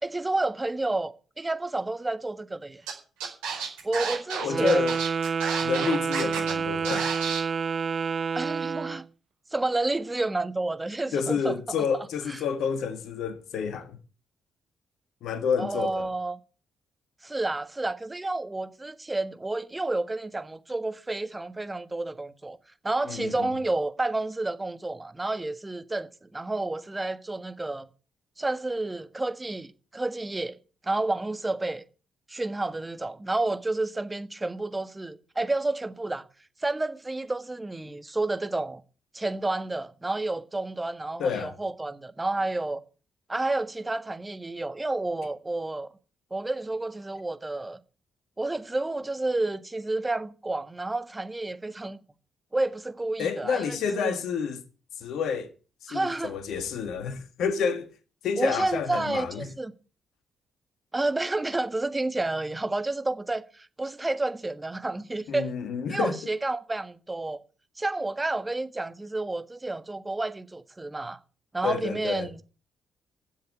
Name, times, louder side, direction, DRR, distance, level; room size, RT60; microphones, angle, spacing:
voice 1, 0.0-2.8 3.8-4.8 8.3-9.1 9.5-11.6 12.3-12.4 15.6-16.4 17.2-22.6 22.8-27.9 28.4-30.6 30.8-31.8 32.3-36.2 36.6-38.8 39.1-42.8 43.3-45.9 46.3-47.8 48.4-52.0 52.5-54.2 55.9-56.4 58.4-59.7 60.9-65.5 65.9-67.4 67.8-71.2 71.5-72.4, right 2 dB, 20° right, 1.5 m, -30 dB
Scratching (performance technique), 2.9-3.0 3.2-6.5 6.8-7.4, right 6 dB, 80° right, 4.6 m, -31 dB
voice 2, 4.4-5.0 5.6-7.1 11.1-14.0 15.2-16.1 23.1-23.5 41.2-41.5 53.2-54.6 55.0-55.5 55.8-57.9 58.2-59.5 65.3-66.1 71.6-72.3, left 6 dB, 65° left, 1.7 m, -29 dB
Wind instrument woodwind instrument, 4.4-9.1, right 6 dB, 50° right, 0.7 m, -29 dB
12.0 x 7.7 x 9.0 m
hypercardioid pair, 40°, 0 cm